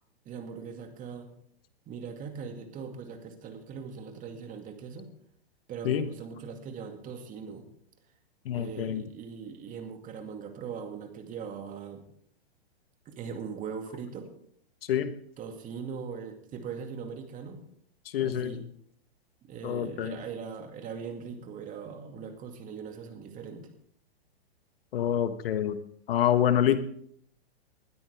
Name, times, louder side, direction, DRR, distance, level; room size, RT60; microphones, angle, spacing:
voice 1, 0.3-1.3 1.9-5.1 5.7-7.7 8.5-12.1 13.1-14.3 15.4-17.6 18.2-18.6 19.4-23.7, right 6 dB, 25° right, 5 dB, 2.3 m, -40 dB
voice 2, 8.4-9.0 14.9-15.1 18.0-18.6 19.6-20.2 24.9-25.8 26.1-26.8, left 10 dB, 65° left, 11 dB, 1.4 m, -26 dB
20.5 x 13.0 x 3.6 m, 0.67 s
hypercardioid pair, 130°, 32 cm